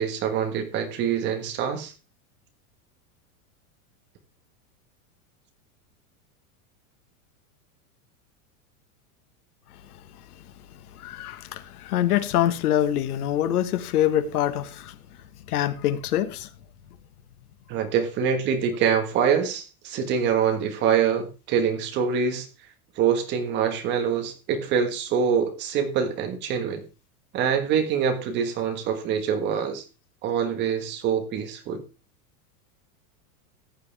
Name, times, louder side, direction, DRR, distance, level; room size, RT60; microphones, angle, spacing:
voice 1, 0.0-1.9 17.7-22.5 23.0-26.8 27.3-29.8 30.2-31.8, right 7 dB, 25° right, 1.5 m, -25 dB
voice 2, 10.9-15.0 15.5-16.5, left 11 dB, 90° left, 1.5 m, -25 dB
14.5 x 9.6 x 3.4 m
supercardioid pair, 180°, 44 cm